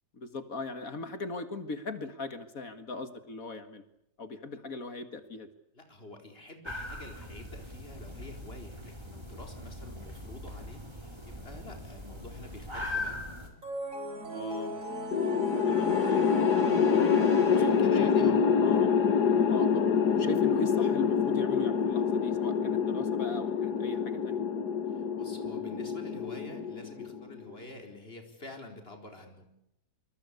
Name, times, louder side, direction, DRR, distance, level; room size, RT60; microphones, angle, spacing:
voice 1, 0.1-3.8 4.2-5.5 9.8-10.0 14.3-14.8 15.7-16.3 17.6-18.9 19.5-24.4, left 3 dB, 60° left, 10 dB, 2.3 m, -39 dB
voice 2, 5.7-13.3 17.4-18.4 24.9-29.5, left 1 dB, 35° left, 5 dB, 4.6 m, -48 dB
sound 1, 6.6-13.5, left 2 dB, 15° right, 4.7 m, -40 dB
Intro-Logo Sound, 13.6-18.3, equal, 55° right, 5.1 m, -37 dB
sound 2, 15.1-27.4, left 6 dB, 85° left, 1.9 m, -26 dB
26.5 x 23.0 x 8.4 m, 0.80 s
omnidirectional pair, 1.7 m